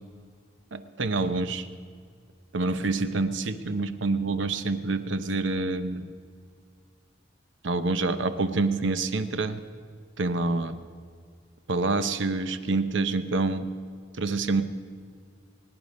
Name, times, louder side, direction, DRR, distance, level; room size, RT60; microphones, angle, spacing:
voice 1, 0.7-1.7 2.5-6.1 7.6-9.6 10.2-10.8 11.7-13.7 14.2-14.6, right 3 dB, 70° right, 11 dB, 0.8 m, -27 dB
23.0 x 9.9 x 5.3 m, 2.1 s
head